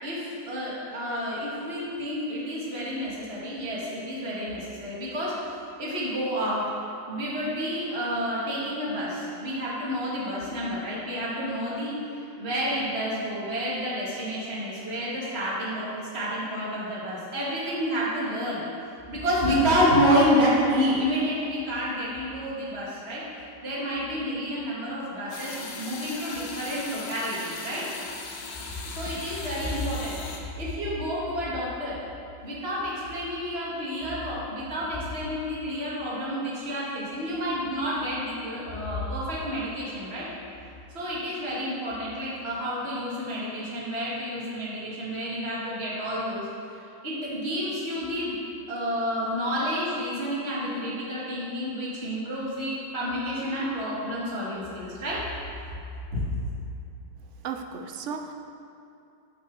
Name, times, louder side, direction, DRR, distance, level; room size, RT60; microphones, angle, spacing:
voice 1, 0.0-5.3 5.8-6.6 7.1-18.6 19.1-27.8 28.9-30.2 30.6-32.0 32.4-40.3 40.9-46.5 47.0-48.3 48.7-55.2, equal, 35° right, -7 dB, 2.5 m, -29 dB
sound 1, 25.3-30.4, left 4 dB, 60° left, 1.4 m, -39 dB
voice 2, 57.4-58.3, right 6 dB, 65° right, 5 dB, 0.7 m, -34 dB
8.8 x 6.6 x 6.6 m, 2.6 s
omnidirectional pair, 2.0 m